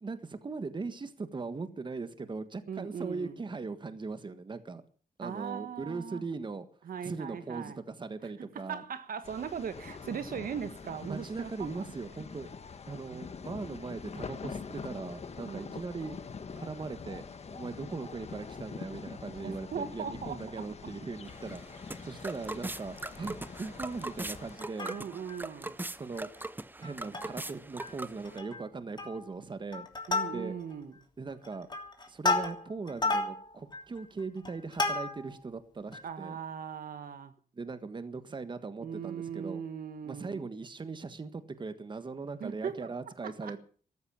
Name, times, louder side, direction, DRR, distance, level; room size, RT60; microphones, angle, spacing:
voice 1, 0.0-4.8 5.2-6.6 7.0-8.8 11.1-12.5 12.9-16.2 16.5-17.3 17.5-21.6 22.0-24.9 26.0-26.3 26.8-29.9 30.3-30.6 31.2-31.7 32.1-36.4 37.5-39.6 40.0-43.6, right 4 dB, 35° right, 1.5 m, -39 dB
voice 2, 2.7-3.4 5.2-6.2 6.8-7.8 8.5-11.9 13.1-13.2 15.4-15.7 19.4-20.6 24.8-25.8 30.1-30.9 36.0-37.3 38.8-40.4 42.4-42.9 43.2-43.6, right 7 dB, 85° right, 1.5 m, -39 dB
sound 1, 9.2-24.6, left 5 dB, 50° left, 1.6 m, -44 dB
sound 2, 21.3-28.4, right 2 dB, 15° right, 0.7 m, -41 dB
Plucked string instrument, 24.6-25.4 25.8-25.9 26.2-26.4 26.8-27.5 27.8-27.9 28.3-28.6 29.0-29.4 29.7-30.8 31.3-35.4 35.9-36.0, left 3 dB, 30° left, 2.9 m, -33 dB
14.5 x 13.0 x 7.2 m
wide cardioid pair, 130°, 15 cm